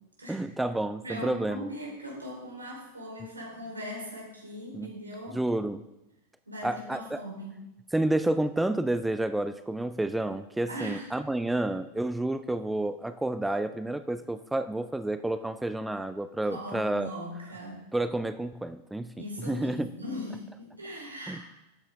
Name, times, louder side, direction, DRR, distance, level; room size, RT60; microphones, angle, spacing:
voice 1, 0.3-1.7 4.7-4.9 5.3-5.8 6.6-7.2 7.9-17.1 17.9-19.1 19.4-19.9 21.3-21.5, right 1 dB, 5° right, 12 dB, 0.4 m, -30 dB
voice 2, 1.0-5.4 6.5-7.6 10.7-11.1 16.4-17.8 19.2-21.5, equal, 80° right, -2 dB, 4.5 m, -39 dB
13.0 x 9.7 x 3.9 m, 0.94 s
figure-of-eight pair, 90°, 0 cm